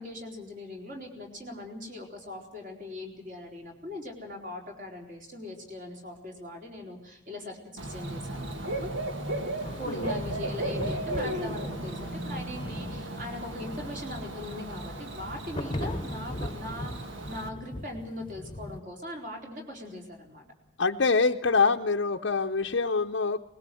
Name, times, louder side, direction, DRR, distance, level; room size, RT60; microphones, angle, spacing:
voice 1, 0.0-8.9 9.8-20.5, left 1 dB, 40° right, 1 dB, 4.2 m, -40 dB
Bird / Cricket, 7.8-17.5, right 1 dB, 70° right, 1.7 m, -35 dB
sound 1, 9.6-18.8, left 1 dB, 25° left, 1.0 m, -39 dB
voice 2, 20.8-23.4, left 4 dB, 65° left, 2 dB, 0.7 m, -25 dB
21.0 x 20.0 x 7.7 m, 0.81 s
head